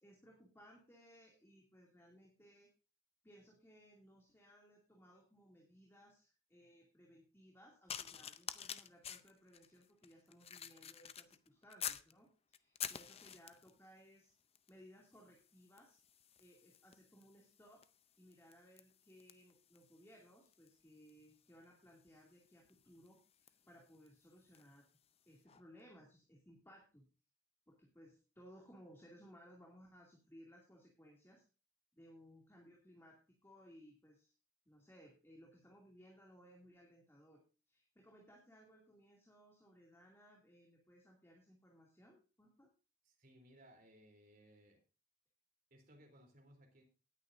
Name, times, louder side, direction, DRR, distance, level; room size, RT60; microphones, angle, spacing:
voice 1, 0.0-2.7 3.2-14.4 14.7-16.0 16.4-17.8 18.2-24.9 25.3-27.0 27.7-31.4 31.9-34.3 34.7-42.7, equal, 15° left, 2.5 m, -62 dB
sound 1, 7.9-12.1 12.5-13.8 14.6-14.8 15.1-24.8 25.5-25.6, left 9 dB, 35° left, 0.5 m, -50 dB
voice 2, 43.0-44.8 45.7-46.8, equal, 50° right, 3.4 m, -63 dB
18.0 x 9.3 x 2.6 m
head